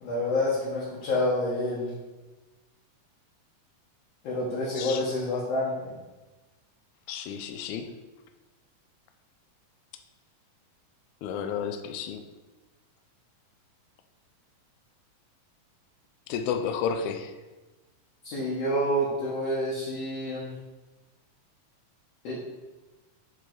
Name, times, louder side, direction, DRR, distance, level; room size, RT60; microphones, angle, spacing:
voice 1, 0.0-1.9 4.2-5.9 18.2-20.5 22.2-22.3, left 1 dB, 60° left, -7 dB, 1.9 m, -28 dB
voice 2, 7.1-7.9 11.2-12.2 16.3-17.3, left 7 dB, 85° left, 7 dB, 1.7 m, -31 dB
7.5 x 3.3 x 4.5 m, 1.2 s
omnidirectional pair, 3.9 m